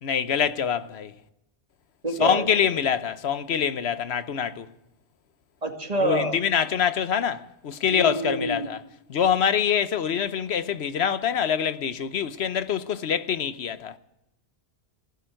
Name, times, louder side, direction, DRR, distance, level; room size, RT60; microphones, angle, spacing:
voice 1, 0.0-1.1 2.2-4.7 6.0-8.8 9.1-14.0, left 8 dB, 75° left, 1.1 m, -25 dB
voice 2, 2.0-2.5 5.6-6.4 7.9-8.7, right 2 dB, 35° right, 2.4 m, -27 dB
16.0 x 11.5 x 7.7 m
omnidirectional pair, 1.1 m